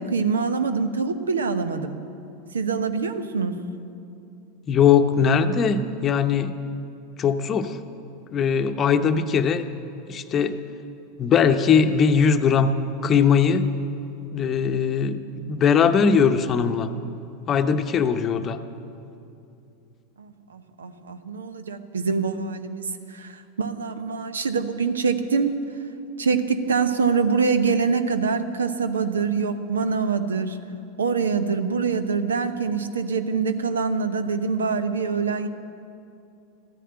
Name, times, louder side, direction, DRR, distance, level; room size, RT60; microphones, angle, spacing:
voice 1, 0.0-2.0 2.5-3.6 20.2-25.5 26.2-30.6 31.0-35.5, right 5 dB, 80° right, 10 dB, 0.8 m, -25 dB
voice 2, 4.7-6.6 7.2-7.8 8.3-9.7 10.1-10.6 11.2-12.7 13.0-13.7 14.3-16.9 17.5-18.6, left 6 dB, 35° left, 9 dB, 0.8 m, -20 dB
14.0 x 10.0 x 8.8 m, 2.6 s
figure-of-eight pair, 85°, 0 cm